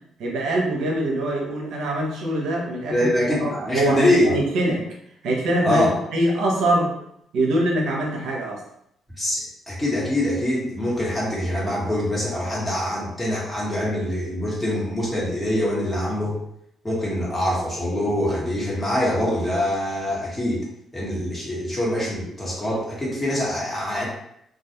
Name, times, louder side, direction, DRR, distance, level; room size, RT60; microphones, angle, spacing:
voice 1, 0.2-4.8 5.2-5.8 6.1-6.9 7.3-8.6, right 1 dB, 80° right, -1 dB, 0.7 m, -23 dB
voice 2, 2.9-4.3 5.6-5.9 9.2-16.4 16.8-20.6 20.9-24.0, left 1 dB, 15° left, -6 dB, 1.2 m, -24 dB
2.3 x 2.2 x 2.8 m, 0.75 s
cardioid pair, 90°, 0 cm